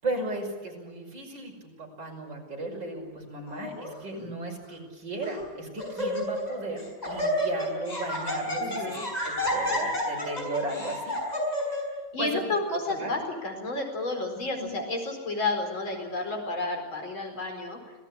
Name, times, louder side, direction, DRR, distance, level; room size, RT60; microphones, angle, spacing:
voice 1, 0.0-9.0 9.2-11.2 11.5-11.8 12.2-12.4 13.0-13.2 14.6-14.8, right 2 dB, 65° right, -1 dB, 6.2 m, -35 dB
Laughter, 3.5-3.9 4.6-4.7 5.2-5.5 5.8-6.5 6.8-11.8, equal, 20° left, 6.6 m, -30 dB
voice 2, 8.6-9.1 12.1-17.8, left 2 dB, 80° left, 3 dB, 5.4 m, -31 dB
26.5 x 17.5 x 8.7 m, 1.3 s
omnidirectional pair, 2.1 m